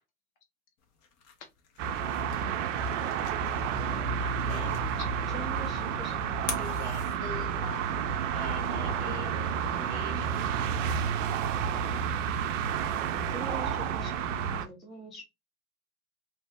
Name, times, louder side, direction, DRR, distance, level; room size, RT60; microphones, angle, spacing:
sound 1, 0.8-7.8, left 6 dB, 35° left, 0.7 m, -46 dB
sound 2, 1.8-14.7, right 7 dB, 60° right, 0.5 m, -30 dB
voice 1, 3.7-6.6 7.0-8.1, left 8 dB, 70° left, 0.7 m, -47 dB
voice 2, 5.3-6.6 13.1-15.2, right 2 dB, ahead, 0.4 m, -43 dB
voice 3, 6.1-7.3 8.3-10.4, left 4 dB, 50° left, 1.2 m, -44 dB
2.7 x 2.0 x 3.3 m
hypercardioid pair, 110°, 44 cm